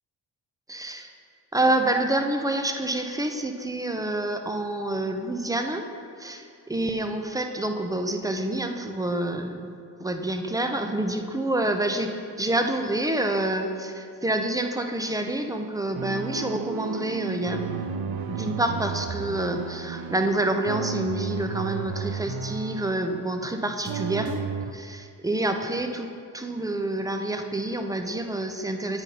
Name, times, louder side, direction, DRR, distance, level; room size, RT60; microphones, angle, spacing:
voice 1, 0.7-1.1 1.5-5.8 6.2-9.6 10.0-17.8 18.3-24.4 24.7-29.0, right 1 dB, 10° right, 6 dB, 0.7 m, -27 dB
sound 1, 15.9-23.6 23.8-24.7, right 7 dB, 55° right, 0.6 m, -33 dB
9.0 x 4.2 x 5.5 m, 2.5 s
supercardioid pair, 60°, 44 cm